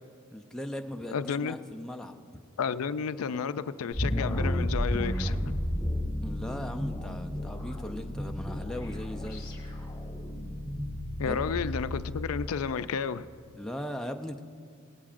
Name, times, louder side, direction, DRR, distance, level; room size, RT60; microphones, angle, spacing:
voice 1, 0.3-2.1 6.2-9.5 11.3-11.5 13.6-14.4, left 1 dB, 5° left, 4 dB, 0.5 m, -38 dB
voice 2, 1.1-1.6 2.6-5.5 11.2-13.3, left 6 dB, 85° left, 13 dB, 0.4 m, -32 dB
sound 1, 3.9-12.1, equal, 20° left, 1.6 m, -32 dB
18.0 x 15.5 x 2.5 m, 2.4 s
head